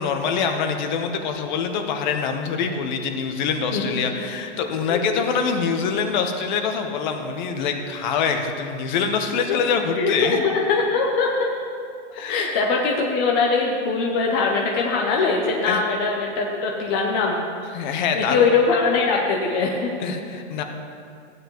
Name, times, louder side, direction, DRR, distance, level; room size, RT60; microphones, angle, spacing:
voice 1, 0.0-10.4 12.1-12.5 15.6-15.8 17.7-18.4 20.0-20.6, left 6 dB, 40° left, 5 dB, 1.0 m, -25 dB
voice 2, 3.7-4.2 4.9-5.0 9.5-9.6 10.0-11.5 12.3-17.4 18.1-20.1, left 4 dB, 15° left, -1 dB, 0.4 m, -22 dB
15.0 x 9.4 x 3.0 m, 2.4 s
hypercardioid pair, 155°, 35 cm